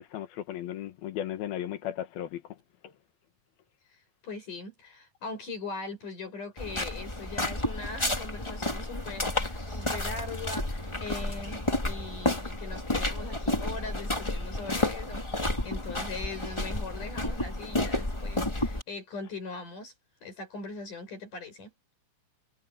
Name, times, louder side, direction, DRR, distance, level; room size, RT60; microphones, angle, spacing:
voice 1, 0.0-2.6 2.8-2.9, left 11 dB, 75° left, 3.3 m, -36 dB
voice 2, 3.9-19.9 20.2-21.7, left 3 dB, 55° left, 7.7 m, -41 dB
sound 1, 6.6-18.8, left 1 dB, 25° left, 0.6 m, -31 dB
omnidirectional pair, 4.4 m